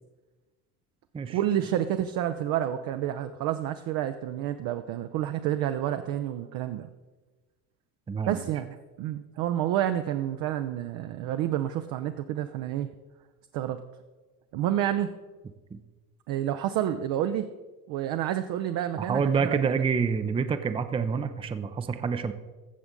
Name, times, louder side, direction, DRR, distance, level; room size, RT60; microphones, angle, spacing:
voice 1, 1.3-6.9 8.3-12.9 13.5-13.8 14.5-15.1 16.3-17.5 17.9-19.8, right 11 dB, 50° right, 8 dB, 0.6 m, -29 dB
voice 2, 8.1-8.4 15.7-15.8 19.0-22.3, right 5 dB, 15° right, 10 dB, 0.5 m, -27 dB
15.0 x 6.9 x 3.7 m, 1.3 s
hypercardioid pair, 75°, 44 cm